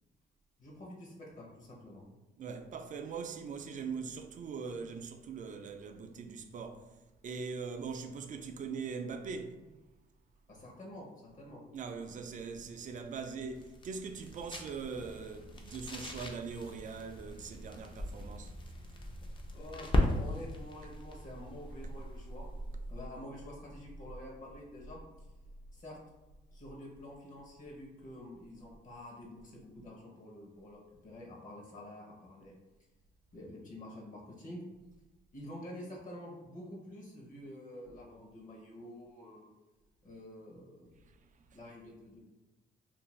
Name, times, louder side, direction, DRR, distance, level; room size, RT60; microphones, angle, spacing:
voice 1, 0.6-2.0 10.5-11.6 19.5-22.5 22.9-25.0 25.7-26.0 26.5-32.6 33.3-34.6 35.3-39.5 40.0-41.0 41.5-42.2, left 1 dB, 40° left, 0.8 m, -48 dB
voice 2, 2.4-6.9 7.2-9.6 11.7-18.5 41.0-41.2 41.5-41.6, right 5 dB, 40° right, 0.4 m, -41 dB
sound 1, 12.5-23.2, left 1 dB, 25° left, 0.5 m, -38 dB
2.5 x 2.2 x 3.1 m
cardioid pair, 90°, 20 cm